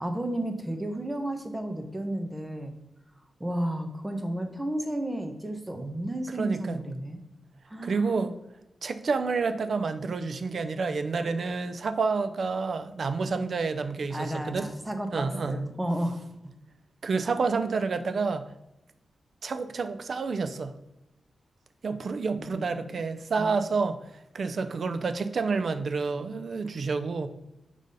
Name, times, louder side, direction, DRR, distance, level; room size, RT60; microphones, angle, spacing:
voice 1, 0.0-2.7 3.4-7.2 7.7-8.2 14.1-16.2 22.4-23.0 23.4-23.5, right 1 dB, 15° right, 6 dB, 0.9 m, -32 dB
voice 2, 6.4-6.8 7.8-8.3 8.8-14.7 15.1-15.6 17.0-18.4 19.4-20.7 21.8-24.0 24.3-27.3, right 4 dB, 65° right, 10 dB, 0.5 m, -29 dB
4.9 x 4.0 x 5.4 m, 0.93 s
cardioid pair, 85°, 0 cm